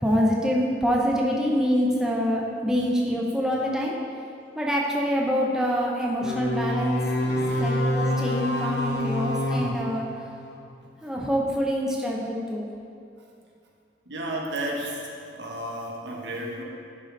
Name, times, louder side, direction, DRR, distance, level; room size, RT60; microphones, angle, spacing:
voice 1, 0.0-3.9 4.6-7.0 7.6-10.1 11.0-12.7, equal, 5° right, -3 dB, 0.7 m, -25 dB
sound 1, 6.2-10.7, left 1 dB, 65° left, 0.8 m, -27 dB
voice 2, 7.2-7.6 14.1-16.6, right 1 dB, 80° right, -1 dB, 1.1 m, -33 dB
10.5 x 4.9 x 3.8 m, 2.4 s
head